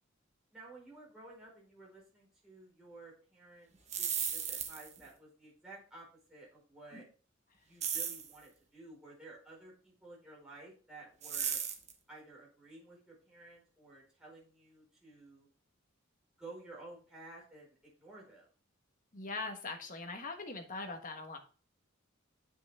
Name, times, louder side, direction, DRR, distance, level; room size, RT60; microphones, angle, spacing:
voice 1, 0.5-3.7 4.0-7.0 7.7-11.6 12.1-15.5 16.4-18.5, right 2 dB, 5° right, -6 dB, 4.5 m, -53 dB
sound 1, 3.7-5.0 7.8-8.3 11.2-11.9, right 8 dB, 35° right, 1.1 m, -35 dB
voice 2, 19.1-21.4, left 3 dB, 45° left, 5 dB, 1.3 m, -41 dB
7.9 x 6.0 x 3.5 m, 0.38 s
head